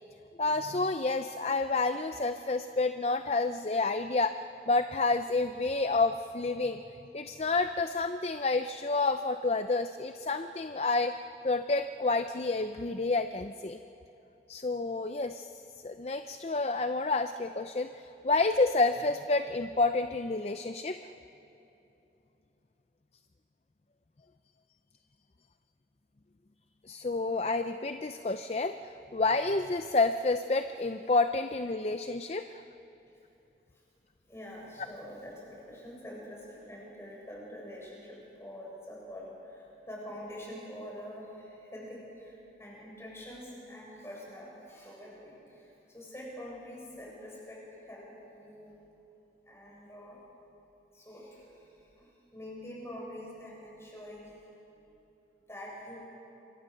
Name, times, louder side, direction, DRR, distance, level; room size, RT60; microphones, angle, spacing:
voice 1, 0.4-6.8 7.1-11.1 11.4-13.8 14.5-15.5 15.8-21.1 26.9-32.6, left 3 dB, 35° left, 9 dB, 0.5 m, -29 dB
voice 2, 34.3-48.8 49.5-50.2 50.9-54.4 54.7-55.0 55.5-56.0, equal, 15° left, -4 dB, 7.0 m, -46 dB
27.5 x 23.5 x 6.8 m, 3.0 s
head